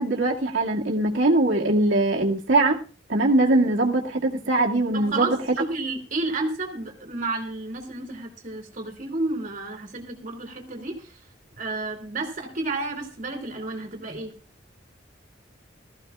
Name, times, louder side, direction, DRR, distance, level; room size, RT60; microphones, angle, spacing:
voice 1, 0.0-2.8 3.1-5.4, right 2 dB, 85° right, -2 dB, 2.2 m, -21 dB
voice 2, 4.9-5.3 5.7-11.2 11.6-14.3, right 3 dB, 45° right, 3 dB, 2.9 m, -31 dB
19.5 x 14.5 x 2.4 m, 0.33 s
head